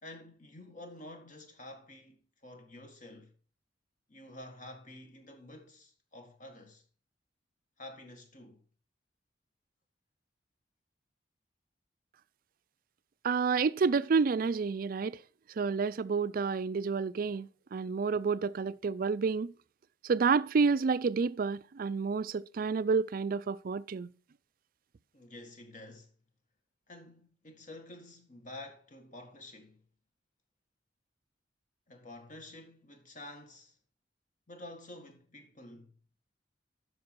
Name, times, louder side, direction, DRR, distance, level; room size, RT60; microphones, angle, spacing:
voice 1, 0.0-3.3 4.1-6.8 7.8-8.7 25.1-26.1 26.9-29.9 31.9-33.8 34.5-35.9, left 1 dB, 45° left, 1.7 m, -49 dB
voice 2, 13.2-15.2 15.6-19.5 20.0-24.1, right 5 dB, 50° right, 0.4 m, -29 dB
9.5 x 6.2 x 4.6 m
head